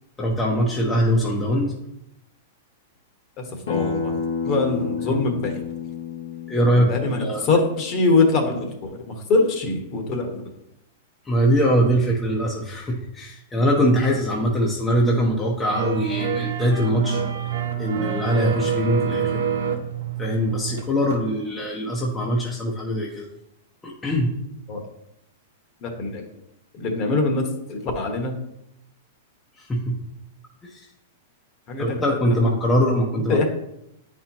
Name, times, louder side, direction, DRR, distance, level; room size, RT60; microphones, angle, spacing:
voice 1, 0.2-1.7 6.5-7.5 11.2-17.2 17.8-19.5 20.2-23.3 23.8-24.3 29.6-30.0 30.6-30.9 31.8-33.5, equal, 15° left, -3 dB, 0.9 m, -22 dB
voice 2, 3.4-4.2 4.4-5.6 6.7-10.4 24.7-24.8 25.8-26.2 26.7-28.3 31.7-32.5 33.3-33.5, left 3 dB, 35° left, 4 dB, 1.3 m, -23 dB
Acoustic guitar, 3.7-8.9, left 5 dB, 85° left, 1.2 m, -31 dB
sound 1, 15.7-21.3 21.5-21.6, right 8 dB, 75° right, 0.8 m, -27 dB
9.1 x 4.4 x 2.9 m, 0.80 s
hypercardioid pair, 140°, 0 cm